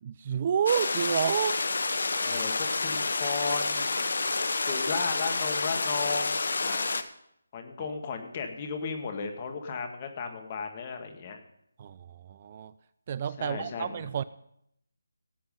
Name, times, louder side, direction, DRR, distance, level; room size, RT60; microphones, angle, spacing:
voice 1, 0.0-1.6 7.8-7.9 11.8-12.7 13.1-14.2, right 8 dB, 35° right, 16 dB, 0.4 m, -30 dB
sound 1, 0.7-7.0, left 3 dB, 60° left, 1.0 m, -29 dB
voice 2, 2.2-4.0 4.7-7.0 7.5-11.4 13.4-14.1, left 5 dB, 30° left, 5 dB, 1.9 m, -35 dB
17.5 x 7.9 x 5.4 m, 0.75 s
figure-of-eight pair, 155°, 0 cm